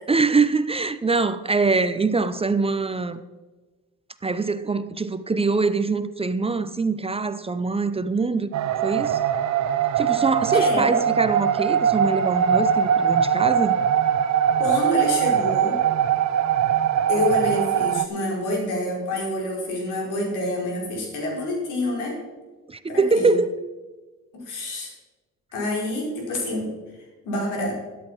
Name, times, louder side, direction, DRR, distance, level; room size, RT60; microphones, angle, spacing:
voice 1, 0.1-3.2 4.2-8.5 8.8-9.2 10.0-13.8 22.7-23.6, right 4 dB, 20° right, 0.6 m, -23 dB
sound 1, 8.5-18.1, right 9 dB, 65° right, 0.9 m, -21 dB
voice 2, 10.5-10.9 14.6-15.8 17.1-22.2 22.9-23.3 24.3-24.9 25.5-26.7 27.2-27.8, left 1 dB, 90° left, 4.8 m, -27 dB
13.0 x 11.0 x 4.6 m
cardioid pair, 90°, 30 cm